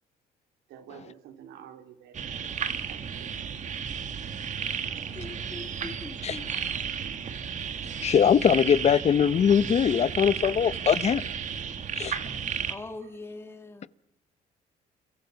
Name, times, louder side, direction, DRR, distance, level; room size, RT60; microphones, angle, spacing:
voice 1, 0.7-3.6 6.5-6.9 12.3-12.4 13.0-13.1, right 9 dB, 80° right, 3.7 m, -50 dB
sound 1, 2.1-12.7, right 7 dB, 45° right, 2.2 m, -33 dB
voice 2, 5.2-6.4 12.7-13.9, left 2 dB, 15° left, 1.8 m, -41 dB
voice 3, 8.0-11.2 11.9-12.2, left 8 dB, 40° left, 0.9 m, -22 dB
30.0 x 23.5 x 6.0 m
cardioid pair, 110°, 17 cm